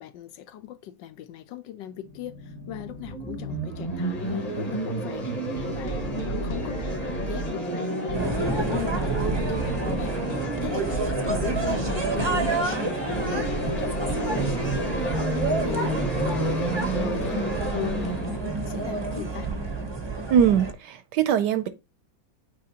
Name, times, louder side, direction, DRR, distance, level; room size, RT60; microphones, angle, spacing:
voice 1, 0.0-5.3 5.7-10.2 10.6-15.2 15.6-16.0 16.2-19.5, left 11 dB, 75° left, 1.2 m, -38 dB
sound 1, 2.1-19.9, right 1 dB, 20° left, 1.5 m, -32 dB
sound 2, 5.2-17.5, equal, 40° left, 0.8 m, -35 dB
sound 3, 8.1-20.7, right 3 dB, 30° right, 0.5 m, -29 dB
voice 2, 20.3-21.7, right 8 dB, 70° right, 1.1 m, -21 dB
8.5 x 4.4 x 2.8 m
omnidirectional pair, 2.1 m